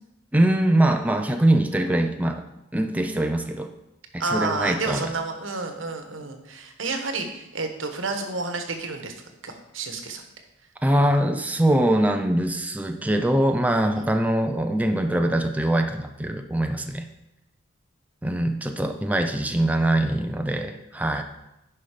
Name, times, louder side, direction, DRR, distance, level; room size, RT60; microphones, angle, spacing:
voice 1, 0.3-2.4 2.7-3.7 4.1-5.1 10.8-17.1 18.2-21.2, right 1 dB, 10° right, 5 dB, 0.5 m, -23 dB
voice 2, 4.2-9.1 9.4-10.2 14.0-14.1, right 3 dB, 80° right, 5 dB, 1.3 m, -30 dB
10.0 x 5.5 x 5.0 m, 0.90 s
head